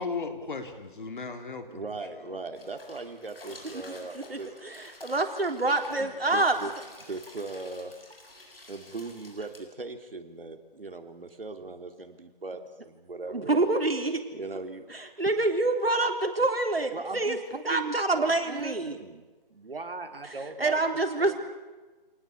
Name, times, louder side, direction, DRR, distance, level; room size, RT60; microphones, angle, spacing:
voice 1, 0.0-1.9 2.1-2.4, left 4 dB, 60° left, 6 dB, 3.9 m, -36 dB
voice 2, 1.7-4.5 6.0-6.7 7.1-8.0 8.7-13.6 14.3-14.8 16.9-20.8 21.2-21.4, right 3 dB, 70° right, 7 dB, 3.2 m, -39 dB
sound 1, 2.5-9.6, left 2 dB, 75° left, 7.2 m, -50 dB
voice 3, 3.9-6.6 13.3-14.2 14.9-17.4 17.6-19.0 20.2-21.4, right 2 dB, 90° right, 5 dB, 3.9 m, -27 dB
27.5 x 19.5 x 8.4 m, 1.2 s
figure-of-eight pair, 155°, 29 cm